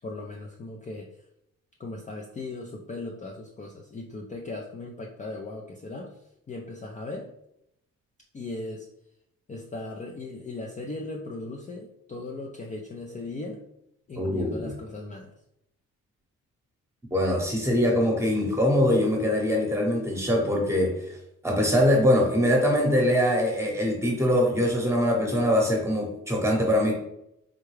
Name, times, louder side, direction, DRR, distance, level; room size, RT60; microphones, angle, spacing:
voice 1, 0.0-1.1 1.8-6.1 6.5-7.3 8.3-8.9 9.5-13.6 14.1-15.3, left 2 dB, 25° left, -1 dB, 0.4 m, -38 dB
voice 2, 14.2-14.6 17.1-21.2 21.4-26.9, left 1 dB, 10° right, 0 dB, 1.0 m, -23 dB
3.7 x 2.2 x 3.2 m, 0.78 s
cardioid pair, 90°, 30 cm